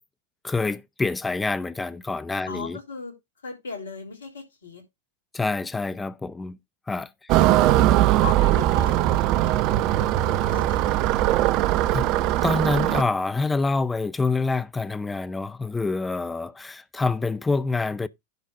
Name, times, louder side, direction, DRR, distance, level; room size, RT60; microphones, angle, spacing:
voice 1, 0.4-2.8 5.3-6.6 6.9-7.1 11.9-12.1 12.4-18.1, left 3 dB, 10° left, 0.5 m, -26 dB
voice 2, 2.4-3.1 3.4-4.8 7.3-7.9 8.2-11.2, left 5 dB, 70° left, 3.3 m, -38 dB
sound 1, 7.3-13.0, right 14 dB, 40° right, 0.6 m, -20 dB
10.5 x 4.0 x 5.0 m
figure-of-eight pair, 90°, 0 cm